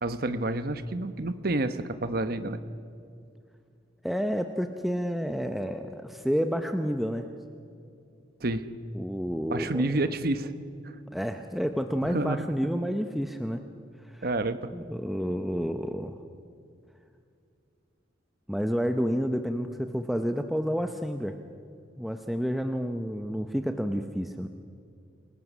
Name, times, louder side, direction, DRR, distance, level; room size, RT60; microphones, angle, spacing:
voice 1, 0.0-2.6 8.4-8.7 9.5-10.5 12.0-12.4 14.2-14.7, right 2 dB, 55° right, 11 dB, 1.0 m, -29 dB
voice 2, 4.0-7.3 8.9-9.9 11.1-13.6 14.1-14.3 14.7-16.2 18.5-21.4 22.0-24.5, equal, ahead, 6 dB, 0.7 m, -30 dB
28.0 x 18.0 x 6.2 m, 2.5 s
head